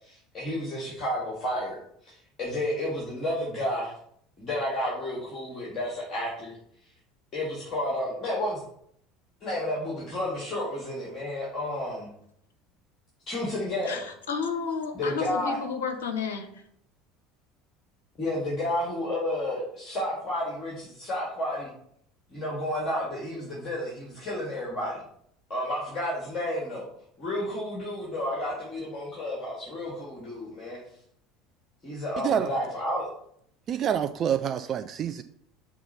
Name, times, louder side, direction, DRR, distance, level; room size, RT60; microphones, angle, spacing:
voice 1, 0.0-3.9 4.4-6.6 7.3-8.6 9.4-12.1 13.3-14.0 14.9-15.6 18.2-21.7 22.3-25.0 25.5-26.8 27.2-30.8 31.8-33.1, left 1 dB, 30° left, -4 dB, 2.0 m, -31 dB
voice 2, 13.9-16.6, left 6 dB, 70° left, 6 dB, 0.9 m, -32 dB
voice 3, 33.7-35.2, right 9 dB, 40° right, 9 dB, 0.3 m, -27 dB
5.8 x 3.6 x 5.6 m, 0.69 s
figure-of-eight pair, 70°, 0 cm